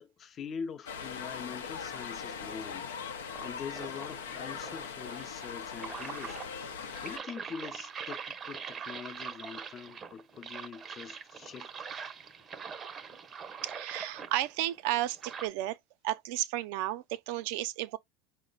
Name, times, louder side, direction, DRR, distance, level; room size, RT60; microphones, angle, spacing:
voice 1, 0.0-2.9 3.4-6.5 7.0-11.7, left 6 dB, 35° left, 0.6 m, -43 dB
sound 1, 0.9-7.2, left 6 dB, 90° left, 0.6 m, -40 dB
sound 2, 3.3-15.5, right 6 dB, 30° right, 0.6 m, -43 dB
voice 2, 13.6-15.8 16.0-18.0, right 14 dB, 65° right, 0.5 m, -33 dB
4.9 x 2.1 x 3.9 m
hypercardioid pair, 100°, 0 cm